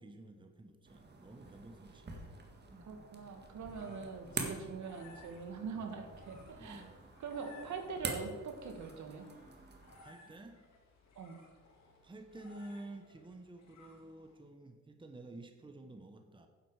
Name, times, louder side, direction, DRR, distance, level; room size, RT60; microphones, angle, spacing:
voice 1, 0.0-3.0 3.8-4.0 4.3-4.7 5.7-5.9 6.6-7.0 10.0-10.7 12.0-16.5, right 2 dB, 15° right, 6 dB, 1.0 m, -51 dB
sound 1, 0.8-10.0, right 3 dB, 35° right, 1.8 m, -46 dB
voice 2, 2.8-6.8 7.2-9.3 11.2-11.4, right 5 dB, 70° right, 4 dB, 1.7 m, -43 dB
sound 2, 3.3-14.5, left 3 dB, 65° left, 2.4 m, -61 dB
10.0 x 7.7 x 4.8 m, 1.4 s
cardioid pair, 90°, 30 cm